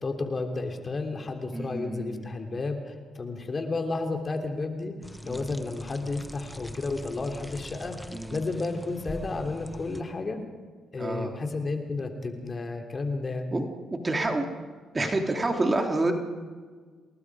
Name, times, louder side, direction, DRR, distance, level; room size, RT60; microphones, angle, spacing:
voice 1, 0.0-4.9 5.2-7.9 8.3-10.4 10.9-13.5, left 3 dB, 35° left, 4 dB, 3.3 m, -32 dB
voice 2, 1.5-2.3 5.2-5.4 8.1-8.5 11.0-11.3 13.5-13.6 13.9-14.5 14.9-16.1, right 2 dB, 25° right, 3 dB, 3.1 m, -28 dB
sound 1, 5.0-10.0, left 1 dB, 5° left, 1.4 m, -42 dB
28.5 x 19.5 x 5.0 m, 1.5 s
supercardioid pair, 65°, 0 cm